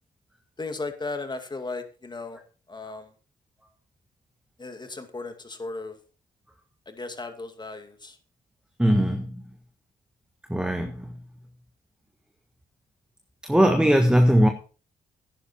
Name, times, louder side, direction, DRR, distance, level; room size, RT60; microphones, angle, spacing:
voice 1, 0.6-2.4 2.7-3.1 4.6-6.0 6.9-8.2, left 3 dB, 25° left, 2.3 m, -36 dB
voice 2, 8.8-9.4 10.5-11.2 13.4-14.5, equal, 5° right, 1.5 m, -20 dB
11.0 x 10.0 x 4.4 m
cardioid pair, 65°, 16 cm